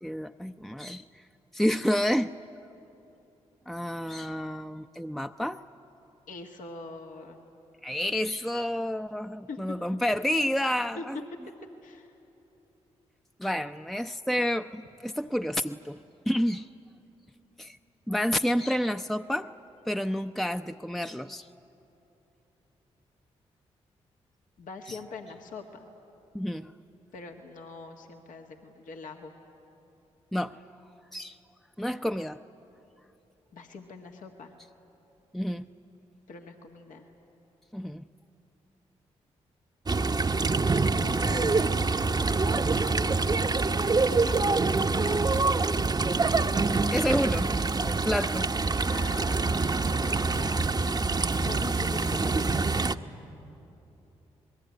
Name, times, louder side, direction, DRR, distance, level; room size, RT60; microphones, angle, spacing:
voice 1, 0.0-1.0 1.5-2.3 3.7-5.6 7.8-11.2 13.4-16.0 16.3-16.7 17.6-17.8 18.1-19.5 19.9-21.5 24.9-25.0 26.3-26.7 30.3-30.6 31.1-31.4 31.8-32.4 35.3-35.6 37.7-38.0 46.9-47.5 47.8-48.5, equal, ahead, 8 dB, 0.6 m, -29 dB
voice 2, 6.3-7.4 9.5-9.8 10.9-11.0 11.8-12.1 24.6-25.9 27.1-29.3 33.5-34.5 36.3-37.1 40.9-42.8 43.7-45.8 48.8-52.8, left 4 dB, 75° left, 3 dB, 1.8 m, -44 dB
sound 1, 39.9-53.0, right 3 dB, 30° right, 0.9 m, -25 dB
sound 2, 44.1-52.0, right 7 dB, 70° right, 0.8 m, -44 dB
27.0 x 20.5 x 9.6 m, 3.0 s
hypercardioid pair, 45°, 14 cm